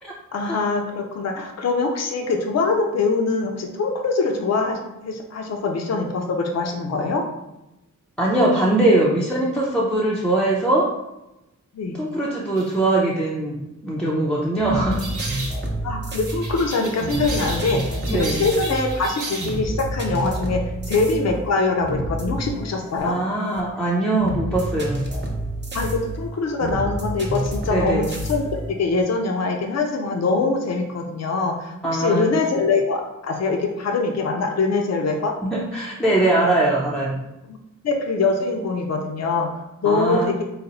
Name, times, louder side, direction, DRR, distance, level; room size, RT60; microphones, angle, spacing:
voice 1, 0.3-7.2 11.7-12.0 15.8-17.8 18.1-23.1 25.7-28.4 28.8-35.3 37.5-37.6 37.8-39.5 39.8-40.4, left 3 dB, 55° left, 3 dB, 0.6 m, -23 dB
voice 2, 8.2-10.9 11.9-13.6 13.8-15.0 18.1-18.5 23.0-25.0 27.7-28.1 31.8-32.3 35.4-37.2 39.8-40.3, right 2 dB, 5° left, -5 dB, 0.5 m, -21 dB
sound 1, 12.6-12.7 14.9-15.6 16.3-19.6, right 2 dB, 75° right, 1.0 m, -34 dB
sound 2, 14.3-29.0, right 1 dB, 35° right, 0.7 m, -29 dB
4.0 x 2.1 x 4.0 m, 0.93 s
wide cardioid pair, 110°, 31 cm